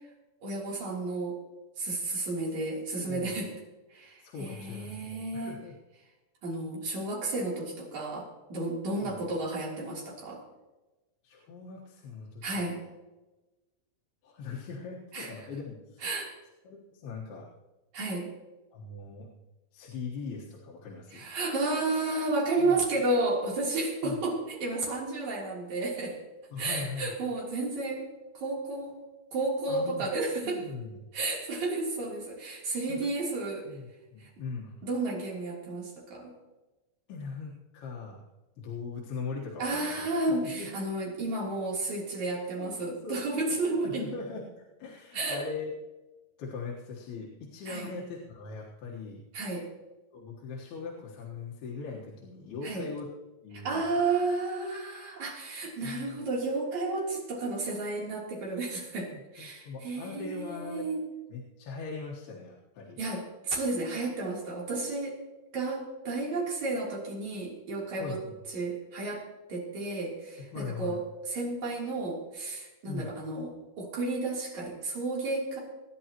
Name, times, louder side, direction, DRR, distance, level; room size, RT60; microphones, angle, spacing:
voice 1, 0.4-1.4 1.8-3.5 3.9-5.6 6.4-10.4 12.4-12.8 15.1-15.3 16.0-16.3 17.9-18.3 21.1-26.2 26.6-28.1 28.3-29.0 29.3-30.6 31.1-33.7 34.2-34.3 34.8-36.4 39.6-44.0 45.1-45.4 47.7-47.9 49.3-49.7 52.6-52.9 53.5-61.0 63.0-65.2 65.5-68.2 68.5-75.6, right 2 dB, 50° right, -3 dB, 4.5 m, -32 dB
voice 2, 3.0-3.4 4.2-5.8 9.0-9.2 11.2-12.9 14.2-16.0 16.6-17.5 18.7-19.3 19.7-21.3 22.6-22.8 24.0-24.2 26.5-27.1 29.7-30.0 30.4-31.0 32.9-33.0 33.6-34.7 37.1-38.2 38.6-40.1 40.4-40.7 42.6-43.4 43.8-45.8 46.4-49.2 50.1-53.1 53.4-54.0 55.8-56.2 59.1-60.9 61.3-63.0 68.0-68.4 70.5-71.0 72.9-73.1, left 4 dB, 90° left, -3 dB, 3.4 m, -40 dB
25.5 x 10.5 x 3.0 m, 1.1 s
omnidirectional pair, 4.3 m